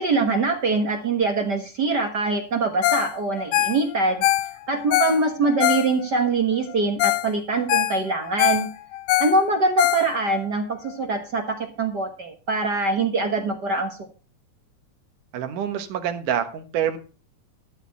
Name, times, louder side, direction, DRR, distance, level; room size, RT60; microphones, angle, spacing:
voice 1, 0.0-4.2 4.7-8.7 9.2-14.0, right 3 dB, 50° right, 4 dB, 1.2 m, -23 dB
Ringtone, 2.8-3.1 3.4-6.3 6.7-6.8 7.0-7.3 7.5-10.4 10.9-11.0, left 16 dB, 75° left, 1.8 m, -23 dB
voice 2, 15.3-17.0, right 9 dB, 75° right, 8 dB, 2.8 m, -26 dB
13.0 x 4.4 x 8.3 m, 0.34 s
omnidirectional pair, 3.7 m